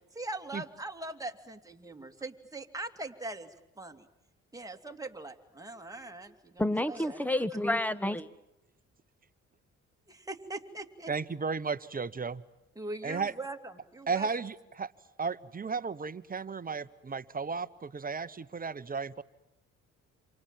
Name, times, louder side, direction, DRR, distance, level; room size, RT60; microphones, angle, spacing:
voice 1, 0.1-3.5 3.8-4.1 4.5-7.2 10.1-11.1 12.7-14.3, right 2 dB, 10° right, 4 dB, 2.8 m, -41 dB
voice 2, 6.6-8.3, left 1 dB, 5° left, 15 dB, 1.4 m, -29 dB
voice 3, 11.1-12.4 13.0-13.3 14.1-14.9 15.2-19.2, right 5 dB, 30° right, 14 dB, 1.1 m, -34 dB
28.5 x 27.0 x 7.5 m, 0.87 s
cardioid pair, 90°, 30 cm